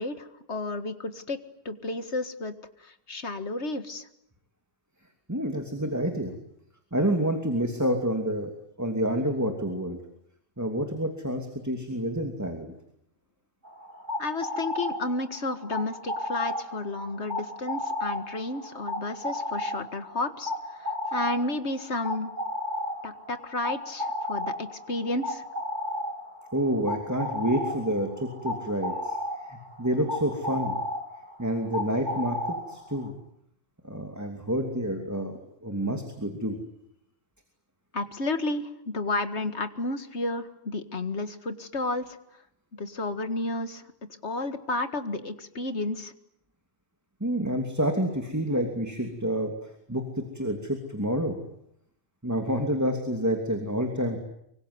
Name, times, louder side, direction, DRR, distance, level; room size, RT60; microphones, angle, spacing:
voice 1, 0.0-1.4 1.7-2.5 2.8-4.1 14.2-22.3 23.0-25.4 37.9-42.4 42.8-43.9 44.2-46.1, left 2 dB, 90° left, 10 dB, 2.2 m, -32 dB
voice 2, 5.3-6.3 6.9-8.5 8.8-10.0 10.6-12.7 26.5-29.2 29.4-30.8 31.4-33.1 33.8-36.6 47.2-51.4 52.2-54.2, equal, 15° right, 4 dB, 2.9 m, -28 dB
Cape turtle dove cooing, 13.6-33.1, left 1 dB, 45° right, 3.8 m, -34 dB
25.0 x 24.0 x 9.7 m, 0.75 s
omnidirectional pair, 1.1 m